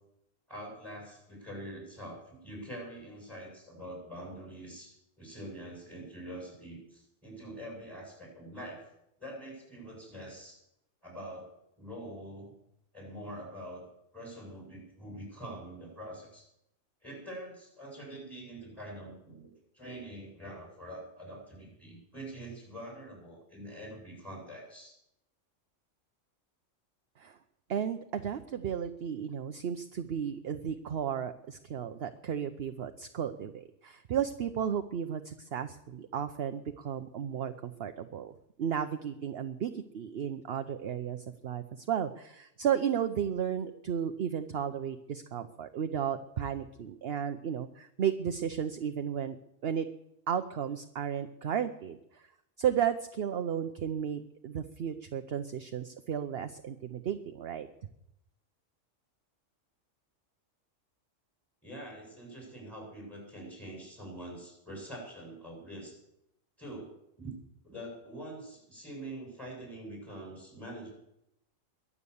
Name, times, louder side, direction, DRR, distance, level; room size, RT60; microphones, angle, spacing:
voice 1, 0.5-8.8 9.2-10.6 11.0-12.5 12.9-13.9 14.1-16.5 17.0-19.5 19.7-25.0 61.6-66.0 66.6-67.4 67.6-70.9, right 1 dB, ahead, -2 dB, 7.9 m, -45 dB
voice 2, 27.7-49.4 49.6-49.8 50.3-52.3 52.6-57.7, right 8 dB, 55° right, 8 dB, 0.9 m, -34 dB
22.5 x 8.5 x 7.0 m, 0.81 s
omnidirectional pair, 1.3 m